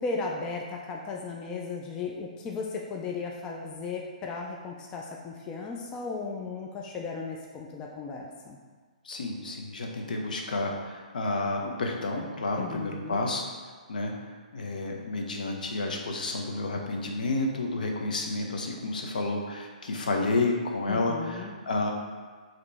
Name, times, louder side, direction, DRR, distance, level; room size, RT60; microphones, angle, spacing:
voice 1, 0.0-8.6 12.6-13.3 20.9-21.6, left 4 dB, 15° left, -1 dB, 0.3 m, -36 dB
voice 2, 9.0-13.4 13.9-21.9, left 2 dB, 80° left, 1 dB, 0.8 m, -30 dB
5.0 x 3.0 x 3.4 m, 1.5 s
hypercardioid pair, 155°, 4 cm